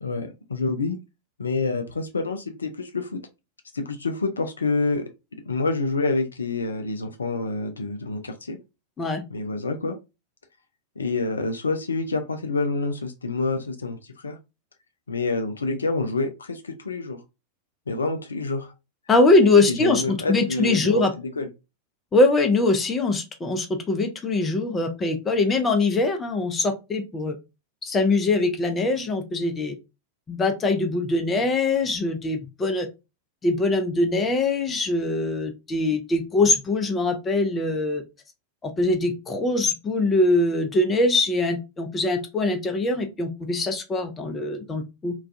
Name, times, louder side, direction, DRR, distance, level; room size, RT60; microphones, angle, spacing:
voice 1, 0.0-1.0 1.4-3.2 3.7-5.0 5.5-8.6 9.3-10.0 11.0-14.4 15.1-17.2 17.9-18.7 19.8-21.5, left 3 dB, 75° left, 0.3 m, -27 dB
voice 2, 19.1-21.1 22.1-27.3 27.8-29.7 30.3-32.9 33.4-38.0 38.6-45.1, left 2 dB, 20° left, 0.5 m, -22 dB
2.3 x 2.2 x 2.5 m
figure-of-eight pair, 90°, 0 cm